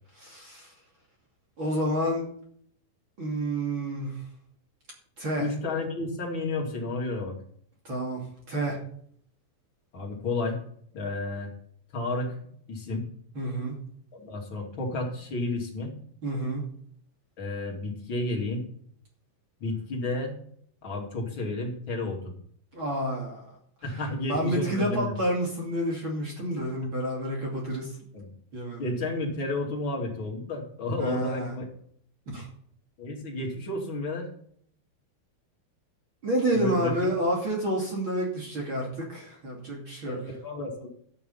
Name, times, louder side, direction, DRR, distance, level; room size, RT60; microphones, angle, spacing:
voice 1, 0.1-0.7 1.6-2.3 3.2-4.2 5.2-5.5 7.8-8.8 13.3-13.8 16.2-16.6 22.7-23.4 23.9-28.0 28.5-28.9 31.0-31.5 32.3-32.5 36.2-40.2, right 1 dB, 35° right, -2 dB, 3.1 m, -29 dB
voice 2, 5.4-7.4 9.9-10.6 10.9-11.5 11.9-13.1 14.1-16.0 17.4-18.7 19.6-20.4 20.8-22.3 23.8-25.1 28.1-28.3 28.8-31.7 33.0-34.3 36.5-36.9 40.0-40.9, left 2 dB, 35° left, 0 dB, 3.0 m, -31 dB
12.5 x 9.4 x 5.5 m, 0.64 s
omnidirectional pair, 4.3 m